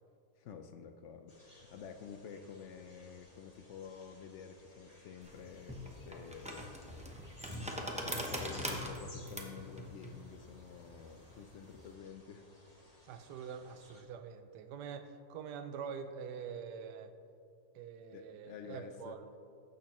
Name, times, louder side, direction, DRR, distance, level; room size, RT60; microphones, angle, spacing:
voice 1, 0.4-12.5 18.1-19.2, left 7 dB, 75° left, 7 dB, 0.6 m, -50 dB
sound 1, 1.3-14.0, left 1 dB, 25° left, 1.2 m, -60 dB
sound 2, 5.2-11.9, equal, 10° right, 0.3 m, -42 dB
voice 2, 13.0-17.1 17.7-19.3, right 6 dB, 85° right, 9 dB, 1.2 m, -45 dB
14.5 x 6.6 x 3.0 m, 2.5 s
omnidirectional pair, 1.8 m